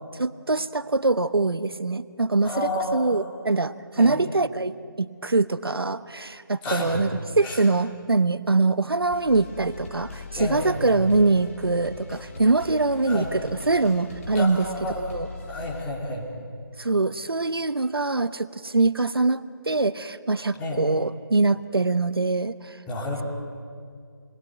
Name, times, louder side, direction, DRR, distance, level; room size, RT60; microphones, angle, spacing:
voice 1, 0.2-7.1 7.4-13.4 13.7-14.7 15.0-15.3 16.8-22.8, right 3 dB, 85° right, 14 dB, 1.0 m, -23 dB
voice 2, 2.4-3.3 4.0-4.2 6.6-7.0 7.4-7.6 10.4-11.0 13.1-13.3 14.3-15.2 15.5-16.2 20.6-20.8 22.9-23.2, left 1 dB, 10° left, -5 dB, 3.8 m, -30 dB
sound 1, 9.1-15.8, left 3 dB, 35° left, 2.4 m, -40 dB
28.0 x 21.0 x 9.2 m, 2.2 s
figure-of-eight pair, 160°, 12 cm